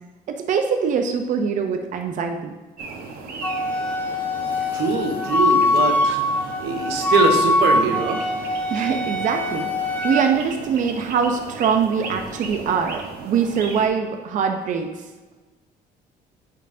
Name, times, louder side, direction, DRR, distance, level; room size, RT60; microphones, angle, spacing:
voice 1, 0.3-2.5 8.7-9.7 10.0-14.9, right 6 dB, 50° right, 5 dB, 0.6 m, -23 dB
sound 1, 2.8-13.9, right 4 dB, 65° right, 1.0 m, -37 dB
Wind instrument woodwind instrument, 3.4-10.2, left 2 dB, 5° left, 0.9 m, -22 dB
voice 2, 4.7-8.3, right 4 dB, 90° right, 4 dB, 1.0 m, -23 dB
9.7 x 4.6 x 2.6 m, 1.2 s
cardioid pair, 110°, 17 cm